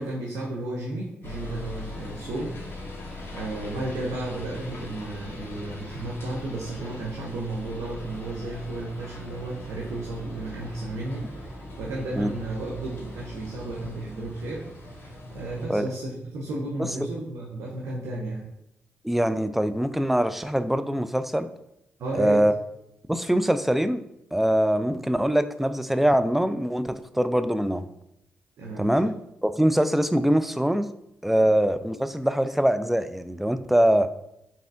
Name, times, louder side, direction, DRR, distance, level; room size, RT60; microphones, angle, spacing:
voice 1, 0.0-2.5 3.3-15.1 15.3-18.5 22.0-22.4 28.6-29.0, right 2 dB, 70° right, -3 dB, 0.6 m, -33 dB
sound 1, 1.2-15.7, left 1 dB, 50° left, 1.2 m, -40 dB
voice 2, 19.0-21.5 22.1-22.5 23.1-24.0 24.3-27.9 28.8-29.1 29.4-30.9 31.2-34.1, right 1 dB, 5° right, 11 dB, 0.3 m, -23 dB
4.0 x 3.7 x 2.4 m, 0.83 s
hypercardioid pair, 40°, 5 cm